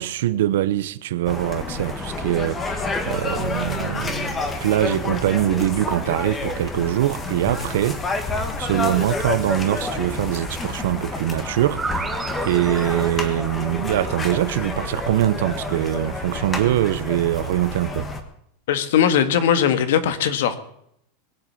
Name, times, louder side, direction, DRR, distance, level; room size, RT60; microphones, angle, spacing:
voice 1, 0.0-8.0 8.6-18.1, right 13 dB, 75° right, 0.9 m, -23 dB
sound 1, 1.2-18.2, left 3 dB, 15° left, 1.4 m, -29 dB
sound 2, 11.4-15.2, right 4 dB, 5° right, 1.0 m, -34 dB
voice 2, 18.7-20.6, left 8 dB, 75° left, 1.7 m, -19 dB
21.5 x 8.0 x 7.2 m
supercardioid pair, 175°, 0 cm